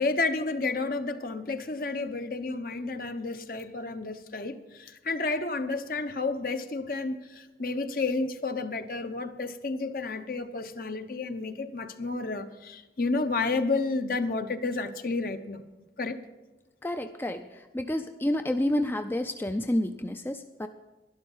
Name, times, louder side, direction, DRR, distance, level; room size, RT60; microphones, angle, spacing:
voice 1, 0.0-15.6 16.0-16.2, left 3 dB, 50° left, 9 dB, 0.8 m, -31 dB
voice 2, 16.8-20.7, left 1 dB, 10° left, 7 dB, 0.4 m, -29 dB
12.0 x 11.5 x 5.5 m, 1.1 s
head